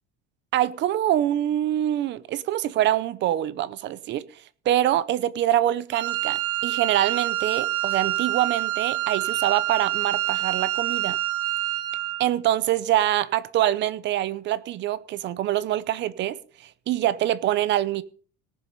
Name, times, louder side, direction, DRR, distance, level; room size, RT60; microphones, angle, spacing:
voice 1, 0.5-4.3 4.7-11.2 12.2-16.4 16.9-18.0, right 12 dB, 40° right, 0.7 m, -24 dB
Wind instrument woodwind instrument, 5.9-12.3, right 14 dB, 70° right, 2.1 m, -27 dB
18.5 x 7.3 x 5.3 m
cardioid pair, 175°, 29 cm